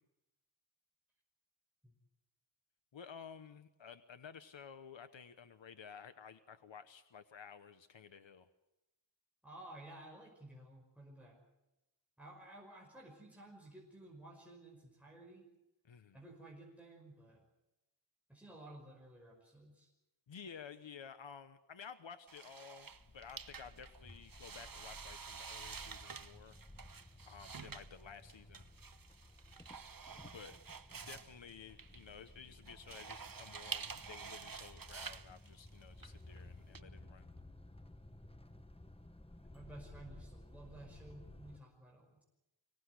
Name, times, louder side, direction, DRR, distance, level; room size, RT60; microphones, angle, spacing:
voice 1, 2.9-8.5 15.8-16.2 20.3-26.6 27.3-28.6 29.8-29.9 30.2-30.6 31.1-37.3, left 7 dB, 85° left, 10 dB, 1.1 m, -53 dB
voice 2, 9.4-11.4 12.2-15.5 16.1-17.4 18.3-19.9 39.4-42.2, right 1 dB, 5° right, -2 dB, 5.6 m, -54 dB
sound 1, 22.3-36.8, right 5 dB, 50° right, 1.1 m, -49 dB
sound 2, 22.9-41.6, left 1 dB, 15° left, 1.2 m, -57 dB
25.0 x 18.0 x 8.2 m, 0.95 s
wide cardioid pair, 65°, 44 cm